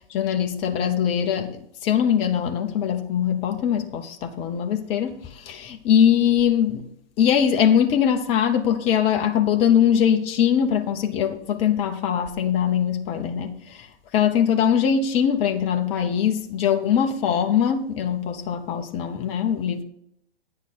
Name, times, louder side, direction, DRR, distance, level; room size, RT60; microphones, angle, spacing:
voice 1, 0.1-6.9 7.2-13.9 14.1-19.8, left 8 dB, 20° left, 0.7 m, -22 dB
9.6 x 7.3 x 3.8 m
figure-of-eight pair, 125°, 30 cm